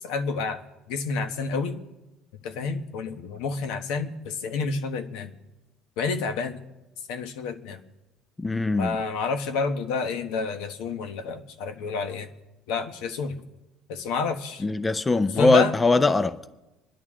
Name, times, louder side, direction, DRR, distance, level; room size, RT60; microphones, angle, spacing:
voice 1, 0.0-0.6 0.9-1.8 2.4-5.3 6.0-6.6 7.1-7.8 8.8-12.3 12.7-13.4 13.9-14.6 15.4-15.7, left 4 dB, 80° left, 1.2 m, -29 dB
voice 2, 8.4-9.0 14.6-16.5, left 3 dB, 10° left, 0.4 m, -21 dB
26.5 x 11.0 x 3.7 m
cardioid pair, 160°, 0 cm